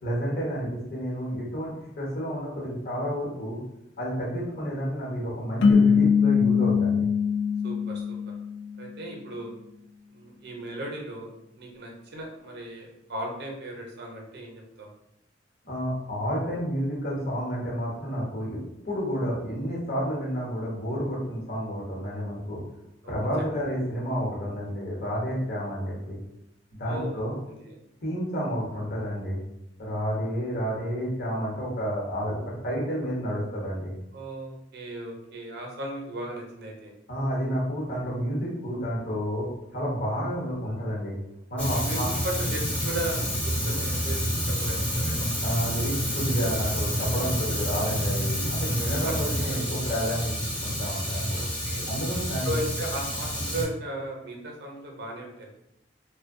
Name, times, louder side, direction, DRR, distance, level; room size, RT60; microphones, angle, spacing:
voice 1, 0.0-3.6 4.0-7.1 15.6-22.6 23.1-26.2 26.8-27.4 28.0-29.4 29.8-33.9 37.1-41.1 41.5-42.1 45.4-50.3 50.6-51.4 51.9-52.6, equal, 55° left, -5 dB, 0.9 m, -30 dB
sound 1, 5.6-8.9, left 6 dB, 75° left, 0.3 m, -22 dB
voice 2, 7.6-8.2 8.8-9.5 10.1-14.9 23.0-23.1 26.8-27.2 27.5-27.8 34.1-36.9 41.8-45.3 49.0-49.3 49.6-49.7 51.3-51.9 52.4-55.6, right 1 dB, 60° right, 0 dB, 0.6 m, -36 dB
Fire, 41.6-53.6, equal, 5° left, 0.5 m, -29 dB
2.6 x 2.1 x 2.5 m, 0.82 s
head